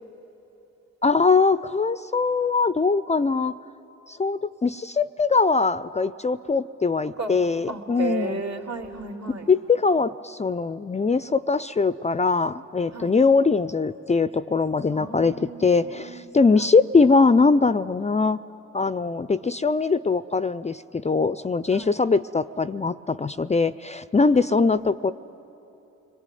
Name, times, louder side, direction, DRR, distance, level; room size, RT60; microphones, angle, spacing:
voice 1, 1.0-3.5 4.1-8.4 9.5-18.4 18.7-25.1, left 4 dB, 20° left, 15 dB, 0.6 m, -22 dB
voice 2, 7.7-9.5 12.9-13.1 14.9-16.7 21.7-22.0 24.2-24.8, right 3 dB, 55° right, 2 dB, 3.2 m, -34 dB
29.0 x 21.5 x 9.3 m, 3.0 s
supercardioid pair, 60°, 31 cm